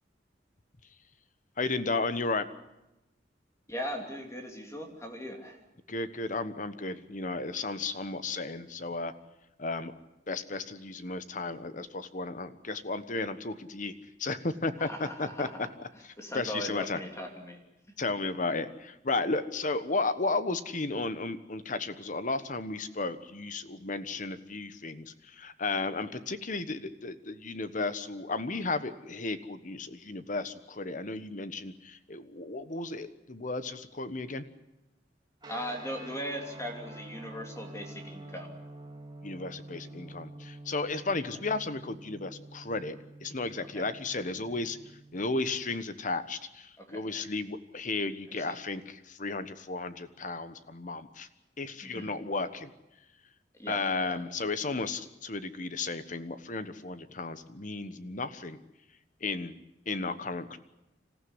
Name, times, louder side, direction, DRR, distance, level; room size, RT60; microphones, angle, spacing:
voice 1, 1.6-2.4 5.9-9.1 9.6-9.9 10.3-13.9 14.2-15.7 16.3-17.0 18.0-34.4 39.2-44.8 45.1-51.3 51.6-52.7 53.7-58.6 59.2-59.6 59.9-60.6, left 3 dB, 45° left, 12 dB, 1.2 m, -34 dB
voice 2, 3.7-5.6 14.8-15.7 16.2-17.6 35.5-38.5 43.7-43.9 46.8-47.0 48.4-48.5 51.8-52.1 53.6-54.2, equal, 15° left, 3 dB, 2.8 m, -39 dB
sound 1, 35.4-45.7, right 2 dB, 25° right, 2.8 m, -48 dB
27.0 x 15.0 x 9.7 m, 0.95 s
head